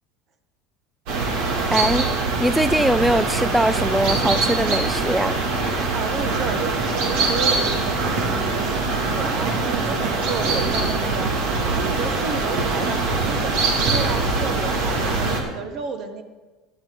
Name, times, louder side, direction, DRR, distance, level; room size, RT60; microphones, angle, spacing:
sound 1, 1.1-15.4, right 3 dB, 70° right, 2.3 m, -23 dB
voice 1, 1.7-2.1 2.4-5.4, right 1 dB, 5° right, 12 dB, 0.3 m, -21 dB
voice 2, 5.7-16.2, right 5 dB, 45° right, 8 dB, 1.4 m, -32 dB
15.0 x 10.5 x 3.8 m, 1.3 s
supercardioid pair, 115°, 0 cm